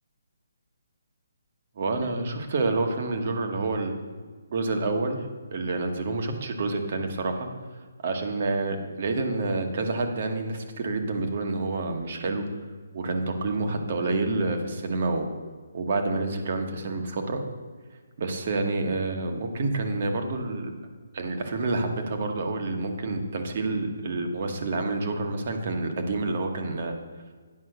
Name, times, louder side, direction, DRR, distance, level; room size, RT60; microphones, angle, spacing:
voice 1, 1.8-3.9 4.5-7.5 8.0-12.5 12.9-15.3 15.7-17.4 18.2-20.7 21.1-26.9, right 3 dB, 35° right, 5 dB, 1.1 m, -28 dB
9.6 x 5.3 x 6.6 m, 1.5 s
hypercardioid pair, 175°, 0 cm